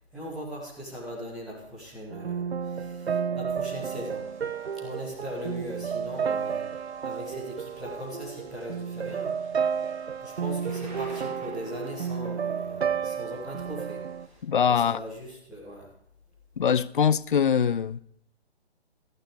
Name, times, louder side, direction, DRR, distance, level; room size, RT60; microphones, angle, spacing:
voice 1, 0.1-4.2 4.8-6.7 7.0-9.6 10.2-14.0 14.7-15.9, equal, ahead, 0.4 m, -39 dB
sound 1, 2.1-14.3, right 7 dB, 75° right, 0.6 m, -32 dB
Thunder / Rain, 3.9-14.4, right 2 dB, 45° right, 3.6 m, -53 dB
voice 2, 14.4-15.0 16.6-18.0, left 7 dB, 50° left, 0.5 m, -23 dB
14.0 x 12.5 x 3.3 m
figure-of-eight pair, 135°, 32 cm